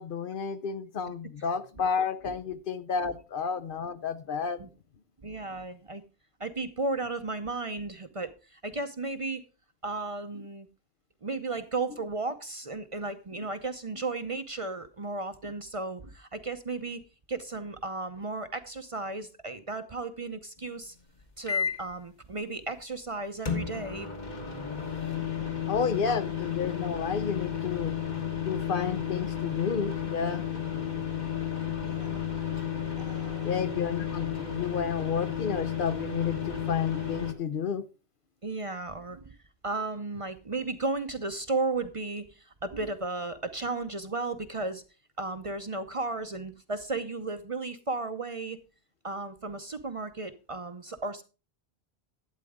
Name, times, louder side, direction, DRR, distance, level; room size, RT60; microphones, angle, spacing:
voice 1, 0.0-4.6 25.7-28.0 28.4-30.4 33.4-37.8, left 6 dB, 60° left, 0.8 m, -31 dB
voice 2, 5.2-6.0 6.4-9.4 9.8-10.7 11.2-17.0 17.3-21.0 21.4-24.1 24.4-24.5 30.5-30.6 31.9-32.2 33.0-33.5 38.4-39.4 39.6-44.8 45.2-48.6 49.0-51.2, right 3 dB, 35° right, 0.7 m, -34 dB
sound 1, 21.5-21.9 23.5-37.3, left 8 dB, 45° left, 1.5 m, -32 dB
12.0 x 8.9 x 3.5 m
omnidirectional pair, 1.1 m